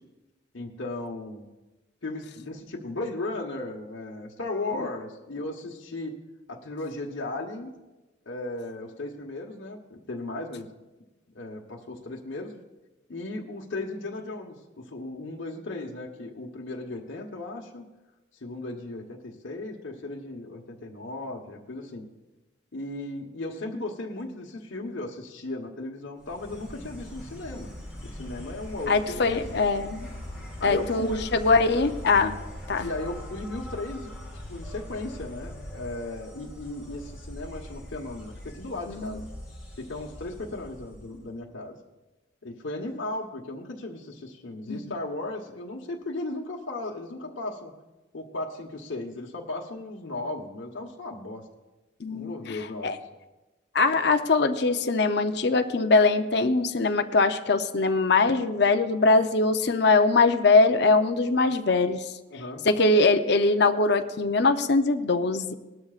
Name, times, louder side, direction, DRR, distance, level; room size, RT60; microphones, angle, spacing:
voice 1, 0.5-1.4 2.0-6.2 6.5-7.7 8.3-10.7 11.3-12.5 13.1-17.8 18.4-22.1 22.7-27.7 28.0-29.7 30.6-31.3 32.8-39.2 39.8-41.8 42.4-47.7 48.1-51.4 52.1-53.0 62.3-62.6, left 2 dB, 80° left, -1 dB, 1.1 m, -36 dB
Insect, 26.2-41.3, left 1 dB, 5° right, 4.2 m, -41 dB
voice 2, 28.9-30.1 30.6-32.4 32.7-32.9 38.9-39.1 44.7-44.8 52.0-52.6 52.8-52.9 53.7-62.0 62.6-65.5, left 3 dB, 60° left, 7 dB, 0.6 m, -22 dB
19.0 x 12.5 x 2.4 m, 1.1 s
head